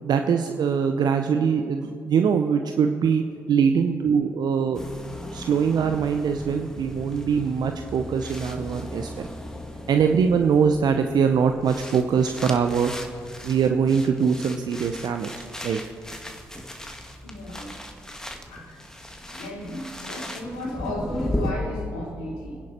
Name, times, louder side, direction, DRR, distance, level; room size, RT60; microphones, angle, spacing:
voice 1, 0.0-3.2 3.5-4.8 5.3-9.3 9.9-12.9 13.4-15.3 15.6-15.8, right 6 dB, 55° right, 6 dB, 0.7 m, -22 dB
sound 1, 4.7-21.5, left 1 dB, 5° left, 1.9 m, -37 dB
voice 2, 17.2-17.9 18.5-18.9 19.3-22.6, left 1 dB, 80° left, -3 dB, 3.7 m, -34 dB
24.5 x 10.5 x 4.4 m, 2.4 s
hypercardioid pair, 45°, 8 cm